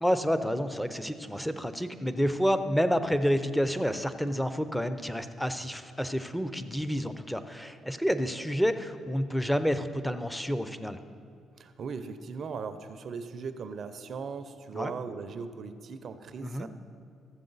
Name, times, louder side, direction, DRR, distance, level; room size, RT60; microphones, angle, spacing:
voice 1, 0.0-11.0 14.7-14.9 16.4-16.7, equal, 5° left, 10 dB, 0.6 m, -29 dB
voice 2, 11.6-16.7, right 5 dB, 55° right, 10 dB, 0.6 m, -38 dB
14.0 x 7.2 x 4.0 m, 2.3 s
supercardioid pair, 75°, 0 cm